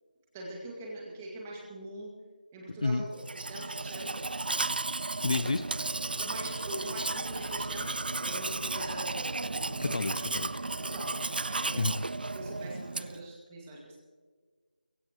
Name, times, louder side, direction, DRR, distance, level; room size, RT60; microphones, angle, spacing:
voice 1, 0.3-2.1 2.5-3.0 3.3-4.2 6.2-9.4 9.8-10.0 10.8-12.0 12.3-14.0, right 1 dB, 10° right, -2 dB, 2.0 m, -43 dB
Domestic sounds home sounds, 3.2-13.3, right 3 dB, 80° right, 0.4 m, -34 dB
voice 2, 5.2-5.6 9.8-10.5 11.8-11.9, left 3 dB, 45° left, 12 dB, 0.6 m, -29 dB
sound 1, 5.3-11.4, left 1 dB, 85° left, 3.6 m, -48 dB
22.0 x 16.5 x 3.0 m, 1.5 s
figure-of-eight pair, 175°, 5 cm